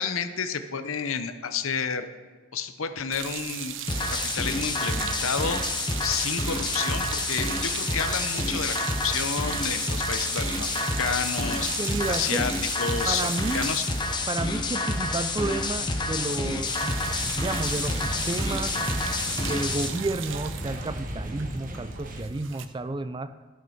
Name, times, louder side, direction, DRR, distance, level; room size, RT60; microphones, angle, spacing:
voice 1, 0.0-2.1 2.5-3.7 4.1-5.6 6.0-8.8 9.0-11.7 12.1-12.5 12.8-13.8, left 6 dB, 75° left, 10 dB, 0.7 m, -30 dB
sound 1, 3.1-15.5 15.8-16.0 16.2-22.7, right 10 dB, 60° right, 0.6 m, -37 dB
sound 2, 3.9-19.9, left 2 dB, 20° left, 0.9 m, -29 dB
voice 2, 11.6-12.5 13.0-13.7 14.3-17.0 17.3-18.7 19.5-23.3, right 2 dB, 20° right, 12 dB, 0.3 m, -31 dB
sound 3, 15.2-22.2, equal, 40° right, 1.1 m, -37 dB
12.0 x 6.5 x 5.8 m, 1.4 s
head